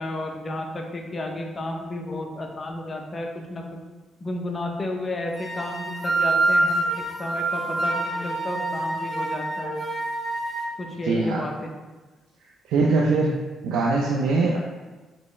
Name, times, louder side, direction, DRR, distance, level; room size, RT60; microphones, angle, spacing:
voice 1, 0.0-3.7 4.2-9.8 10.8-11.7, left 1 dB, 30° left, 2 dB, 0.7 m, -32 dB
sound 1, 5.4-10.7, right 2 dB, 10° left, 1.1 m, -26 dB
voice 2, 11.0-11.5 12.6-13.3 13.6-14.6, right 3 dB, 85° right, -2 dB, 0.4 m, -22 dB
4.2 x 3.0 x 3.2 m, 1.2 s
cardioid pair, 90°, 0 cm